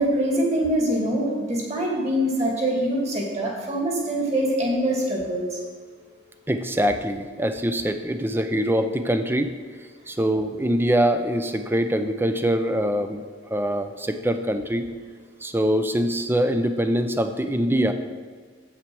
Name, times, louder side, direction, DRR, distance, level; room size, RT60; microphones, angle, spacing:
voice 1, 0.0-5.6, right 1 dB, 35° right, -2 dB, 2.4 m, -24 dB
voice 2, 6.5-9.5 10.1-13.2 13.5-14.9 15.4-17.9, equal, 10° right, 8 dB, 0.5 m, -23 dB
8.2 x 7.4 x 6.2 m, 1.5 s
head